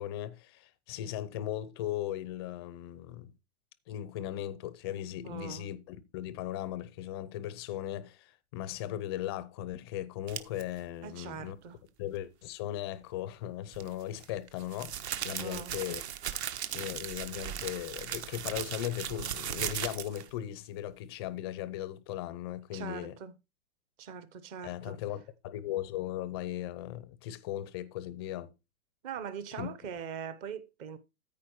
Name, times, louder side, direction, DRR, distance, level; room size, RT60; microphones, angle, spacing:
voice 1, 0.0-3.3 3.9-11.6 12.0-14.9 15.2-16.0 16.7-23.1 24.6-28.5 29.6-29.7, left 12 dB, 20° left, 0.5 m, -38 dB
voice 2, 5.2-5.7 11.0-11.8 15.4-15.7 22.7-23.4 24.0-25.0 29.0-31.0, right 7 dB, 20° right, 0.7 m, -41 dB
sound 1, 10.3-10.6 13.7-20.3, right 10 dB, 45° right, 1.3 m, -37 dB
14.0 x 4.8 x 4.6 m
hypercardioid pair, 150°, 44 cm